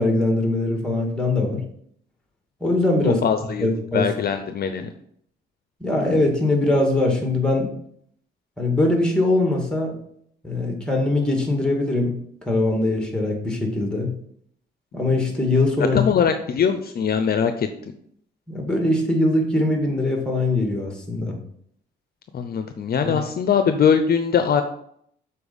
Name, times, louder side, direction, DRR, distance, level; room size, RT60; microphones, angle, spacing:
voice 1, 0.0-1.6 2.6-3.2 3.6-4.1 5.8-7.7 8.6-10.0 10.4-12.2 12.5-14.1 14.9-16.0 18.5-21.4 23.0-23.1, left 2 dB, 5° left, 2 dB, 2.1 m, -21 dB
voice 2, 3.0-3.7 3.9-4.9 15.9-17.7 22.3-24.6, left 7 dB, 50° left, 8 dB, 0.7 m, -21 dB
6.9 x 4.3 x 5.4 m, 0.66 s
cardioid pair, 90°, 20 cm